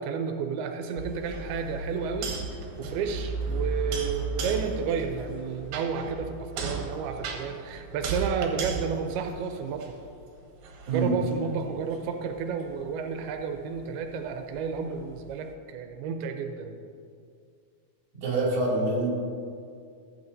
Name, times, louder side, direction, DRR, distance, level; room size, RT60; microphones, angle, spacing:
voice 1, 0.0-2.4 2.8-10.0 10.9-16.7, right 6 dB, 90° right, 5 dB, 2.6 m, -31 dB
sound 1, 1.0-10.2 10.6-15.5, right 4 dB, 70° right, 2.6 m, -35 dB
voice 2, 18.2-19.1, right 2 dB, 35° right, -4 dB, 2.7 m, -26 dB
15.0 x 8.7 x 2.7 m, 2.3 s
omnidirectional pair, 4.4 m